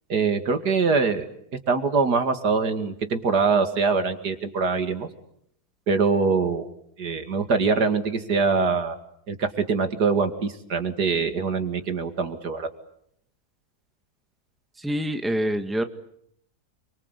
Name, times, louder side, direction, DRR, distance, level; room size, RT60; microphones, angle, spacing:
voice 1, 0.1-1.3 1.7-5.1 5.9-6.7 7.0-9.0 9.3-12.7, right 4 dB, 85° right, 8 dB, 2.8 m, -23 dB
voice 2, 14.8-15.8, equal, ahead, 7 dB, 1.7 m, -26 dB
30.0 x 24.0 x 8.3 m, 0.71 s
omnidirectional pair, 1.7 m